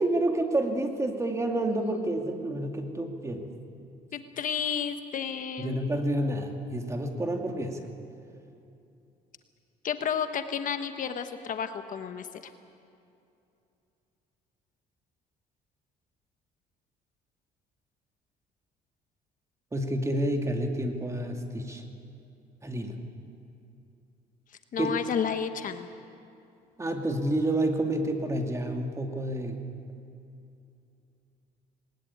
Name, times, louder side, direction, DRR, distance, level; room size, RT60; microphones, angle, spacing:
voice 1, 0.0-3.5 5.6-7.8 19.7-21.8 22.6-23.0 24.8-24.9 26.8-29.6, right 1 dB, 15° right, 3 dB, 2.5 m, -29 dB
voice 2, 4.1-5.7 9.8-12.5 24.7-25.9, left 7 dB, 50° left, 8 dB, 1.2 m, -31 dB
20.0 x 19.5 x 8.7 m, 2.7 s
cardioid pair, 110°, 17 cm